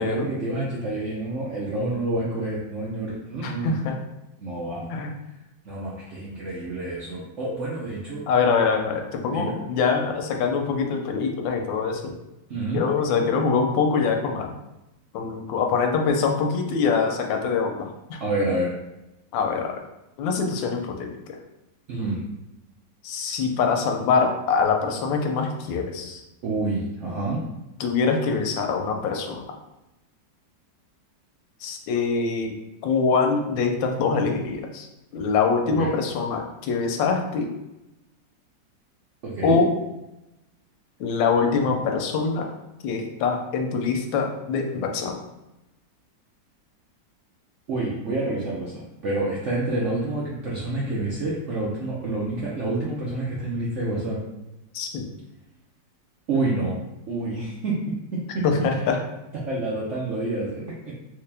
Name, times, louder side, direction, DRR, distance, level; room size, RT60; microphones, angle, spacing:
voice 1, 0.0-3.8 4.4-4.9 5.6-8.2 9.3-9.5 12.5-12.8 18.2-18.7 21.9-22.2 26.4-27.4 35.6-35.9 39.2-39.6 47.7-54.2 56.3-56.8 57.1-58.4 59.5-60.9, right 2 dB, 75° right, -5 dB, 0.6 m, -28 dB
voice 2, 3.4-4.0 4.9-5.1 8.3-12.2 12.7-14.6 15.1-18.2 19.3-19.7 20.2-21.4 23.0-26.2 27.8-29.5 31.6-32.6 32.8-37.5 39.4-39.7 41.0-42.5 42.8-45.2 54.7-55.1 58.4-59.0, left 5 dB, 85° left, 3 dB, 1.3 m, -24 dB
3.2 x 2.8 x 3.3 m, 0.96 s
omnidirectional pair, 2.0 m